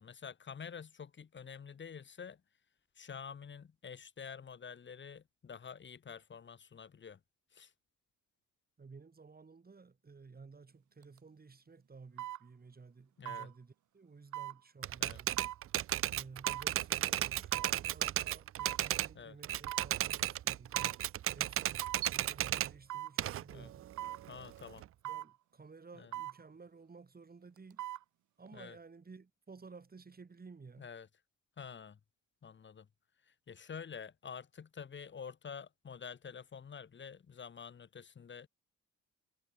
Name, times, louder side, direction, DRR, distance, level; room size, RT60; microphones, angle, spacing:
voice 1, 0.0-2.4 2.9-7.2 7.5-7.7 13.2-13.5 15.0-15.2 19.1-19.4 21.4-21.5 23.5-23.7 24.3-24.8 25.9-26.1 28.5-28.8 30.8-31.1 31.6-32.0 32.4-32.9 33.2-38.5, left 6 dB, 40° left, 1.5 m, -48 dB
voice 2, 8.8-15.5 16.1-21.1 21.3-23.9 25.0-27.9 28.4-30.9, right 4 dB, 30° right, 6.9 m, -54 dB
sound 1, 11.0-11.2 12.2-12.4 13.3-13.5 14.3-14.6 15.4-15.6 16.4-16.7 17.5-17.8 18.6-18.9 19.7-19.9 20.7-21.0 21.8-22.1 22.9-23.2 24.0-24.2 25.0-25.3 26.1-26.4 27.6-28.0 28.5-28.6, right 14 dB, 75° right, 1.6 m, -41 dB
Typewriter, 14.8-19.1 19.4-22.7 23.2-24.8, right 12 dB, 45° right, 0.4 m, -34 dB
cardioid pair, 90°, 30 cm